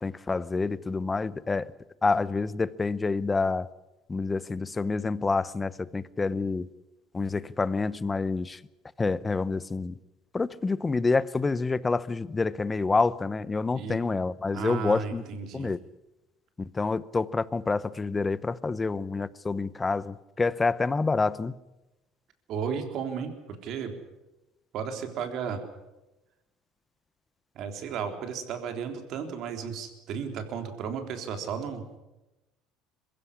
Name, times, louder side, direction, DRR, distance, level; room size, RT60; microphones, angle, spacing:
voice 1, 0.0-1.7 2.0-3.7 4.1-6.7 7.1-8.6 9.0-10.0 10.3-15.2 15.5-15.8 16.6-21.5, left 3 dB, 15° left, 0.7 m, -28 dB
voice 2, 14.5-15.7 22.5-24.0 24.7-25.6 27.6-32.0, right 6 dB, 55° right, 3.6 m, -34 dB
22.5 x 15.5 x 9.8 m
supercardioid pair, 115°, 0 cm